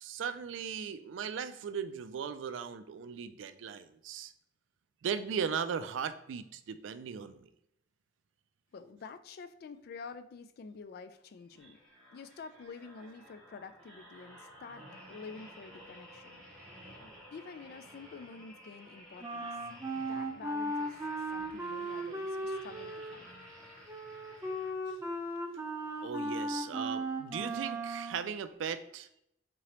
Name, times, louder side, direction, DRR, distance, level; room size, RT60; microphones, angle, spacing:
voice 1, 0.0-4.3 5.0-7.5 26.0-29.1, right 7 dB, 80° right, 11 dB, 0.4 m, -37 dB
voice 2, 8.7-11.8 12.1-16.4 17.0-19.5 19.9-20.9 21.3-23.3, left 5 dB, 55° left, 10 dB, 0.3 m, -48 dB
sound 1, 11.5-25.1 25.6-25.8, equal, 5° left, 1.2 m, -54 dB
Wind instrument woodwind instrument, 19.2-28.2, right 1 dB, 15° right, 0.5 m, -37 dB
3.7 x 3.2 x 2.9 m, 0.75 s
head